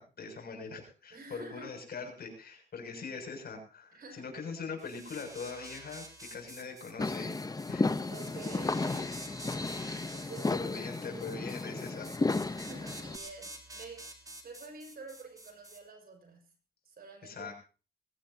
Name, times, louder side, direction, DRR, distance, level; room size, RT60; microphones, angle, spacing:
voice 1, 0.0-7.3 7.7-7.9 9.8-10.1 10.5-12.1 17.2-17.5, left 4 dB, 70° left, 3 dB, 7.2 m, -42 dB
voice 2, 1.1-1.7 3.9-4.3 8.1-9.1 9.5-10.6 12.4-14.1 14.4-16.5 16.8-17.5, right 3 dB, 65° right, 5 dB, 6.0 m, -48 dB
sound 1, 4.8-15.8, right 1 dB, 20° right, 3.1 m, -49 dB
sound 2, 7.0-13.2, left 3 dB, 20° left, 0.9 m, -33 dB
22.0 x 18.0 x 2.9 m, 0.35 s
wide cardioid pair, 115°, 17 cm